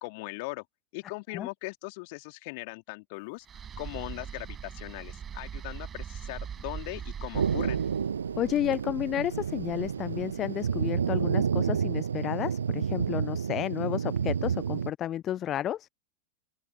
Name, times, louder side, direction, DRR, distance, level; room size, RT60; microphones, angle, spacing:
voice 1, 0.0-0.6 0.9-3.5 3.8-7.8, left 29 dB, 45° left, 3.3 m, -39 dB
sound 1, 3.4-10.6, right 8 dB, 25° right, 4.8 m, -42 dB
Thunder, 7.3-14.9, right 7 dB, 70° right, 1.0 m, -30 dB
voice 2, 8.4-15.9, left 11 dB, 30° left, 0.4 m, -31 dB
open air
figure-of-eight pair, 90°, 0 cm